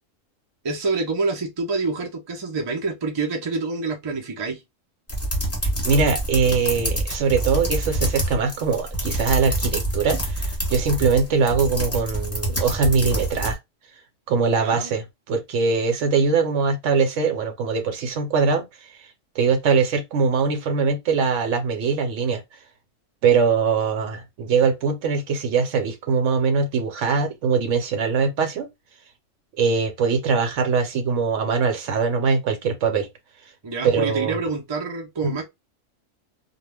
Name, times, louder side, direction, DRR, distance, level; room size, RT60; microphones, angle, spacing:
voice 1, 0.6-4.6 14.6-14.9 33.6-35.5, right 3 dB, 35° right, 0.4 m, -27 dB
sound 1, 5.1-13.5, right 1 dB, 15° left, 0.8 m, -26 dB
voice 2, 5.8-13.6 14.3-18.9 19.3-22.4 23.2-28.7 29.6-33.1 33.8-34.4 35.2-35.3, right 5 dB, 70° right, 1.0 m, -22 dB
2.3 x 2.1 x 3.3 m
omnidirectional pair, 1.3 m